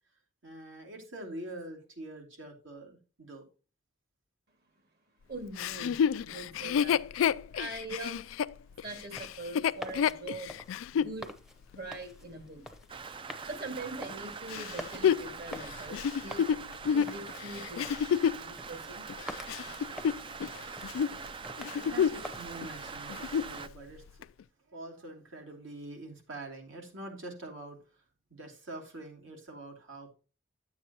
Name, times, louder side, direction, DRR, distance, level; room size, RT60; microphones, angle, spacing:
voice 1, 0.4-3.5 21.7-24.2 24.7-28.0 28.3-30.1, right 2 dB, 75° right, 1 dB, 2.8 m, -45 dB
voice 2, 5.3-7.0 7.5-8.3 8.8-10.6 10.9-11.3 11.7-12.6 13.4-16.5 16.9-17.8 18.4-19.1, right 2 dB, 55° right, 6 dB, 2.0 m, -42 dB
Chuckle chortle, 5.6-11.2 11.7-11.8 14.5-18.5 19.1-20.6 20.8-21.2 21.6-22.3 22.6-22.7 23.1-23.6 24.2-24.3, left 8 dB, 90° left, 0.3 m, -29 dB
sound 1, 9.0-22.4, equal, ahead, 0.7 m, -48 dB
Rain, 12.9-23.7, right 5 dB, 25° right, 0.4 m, -43 dB
10.0 x 7.9 x 2.9 m, 0.34 s
head